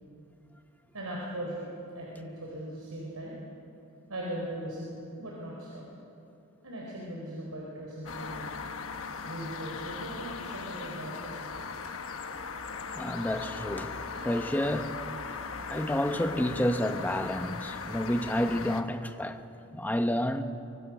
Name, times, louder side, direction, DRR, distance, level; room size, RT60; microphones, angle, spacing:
voice 1, 0.9-1.7 1.9-3.4 4.1-5.9 6.6-8.5 9.2-11.3, right 1 dB, 80° right, 4.4 m, -39 dB
sound 1, 8.0-18.8, left 5 dB, 65° left, 1.2 m, -39 dB
voice 2, 12.9-13.9 14.2-14.9 15.7-19.4 19.7-20.4, left 1 dB, 10° left, 0.9 m, -29 dB
24.0 x 23.5 x 6.2 m
head